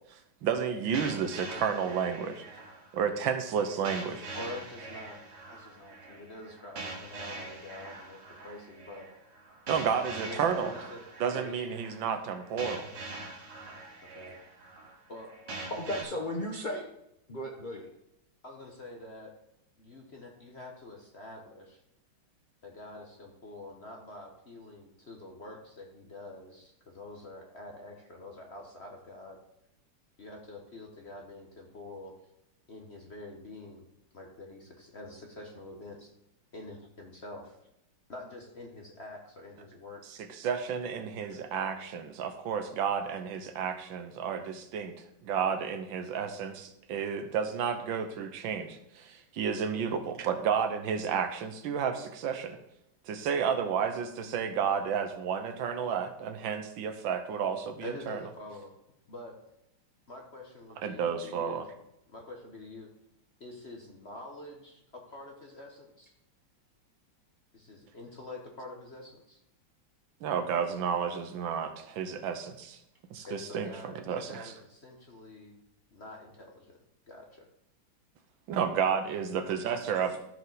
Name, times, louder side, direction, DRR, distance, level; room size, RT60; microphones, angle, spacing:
voice 1, 0.1-2.4 2.9-4.2 9.7-10.7 11.2-12.9 40.1-52.6 53.1-58.2 60.8-61.7 70.2-72.8 73.1-74.5 78.5-80.2, right 7 dB, 70° right, 7 dB, 1.5 m, -31 dB
sound 1, 0.9-16.0, right 2 dB, 40° right, 1.5 m, -44 dB
voice 2, 4.3-5.2 5.5-8.2 8.4-9.1 10.2-11.0 11.3-11.5 12.3-12.4 14.1-14.4 15.1-15.3 18.4-19.3 19.8-21.8 22.6-29.4 30.2-32.1 32.7-33.8 34.1-36.1 36.5-37.6 38.1-40.2 49.1-49.2 57.8-58.8 59.1-59.3 60.1-61.7 62.1-62.9 63.4-66.1 67.5-69.4 73.2-74.0 74.3-75.5 75.9-76.8 77.1-77.5, left 2 dB, 45° left, 1 dB, 0.9 m, -46 dB
voice 3, 15.7-16.9 17.3-17.9, left 1 dB, 75° left, 1 dB, 0.4 m, -35 dB
13.5 x 5.0 x 3.9 m, 0.81 s
omnidirectional pair, 2.4 m